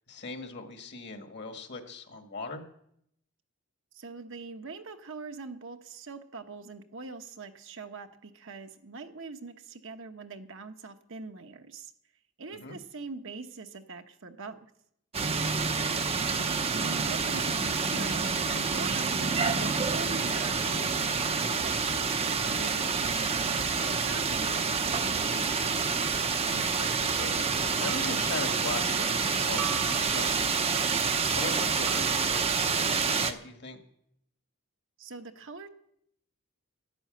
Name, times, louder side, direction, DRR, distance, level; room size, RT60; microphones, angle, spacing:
voice 1, 0.1-2.6 12.5-12.8 16.4-16.6 26.5-29.6 29.9-30.3 31.1-33.8, left 3 dB, 50° left, 5 dB, 1.6 m, -40 dB
voice 2, 3.9-11.9 12.4-14.7 16.7-18.3 18.7-21.8 22.5-25.6 35.0-35.7, right 4 dB, 60° right, 6 dB, 1.1 m, -43 dB
sound 1, 15.1-33.3, right 5 dB, 25° right, 0.7 m, -28 dB
sound 2, 27.9-28.4 29.6-30.5 31.9-32.5, right 10 dB, 90° right, 0.5 m, -41 dB
12.0 x 11.0 x 7.7 m, 0.72 s
head